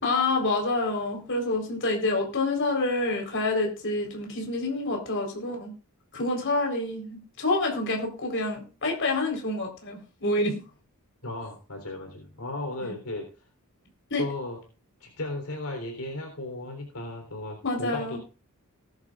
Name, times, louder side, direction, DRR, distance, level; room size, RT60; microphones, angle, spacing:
voice 1, 0.0-5.7 6.1-10.6 12.8-12.9 14.1-14.2 17.6-18.2, left 2 dB, 55° left, 1 dB, 4.2 m, -27 dB
voice 2, 11.2-13.3 14.2-14.6 15.0-18.2, left 2 dB, 75° left, 2 dB, 3.8 m, -35 dB
19.5 x 10.5 x 2.5 m, 0.34 s
head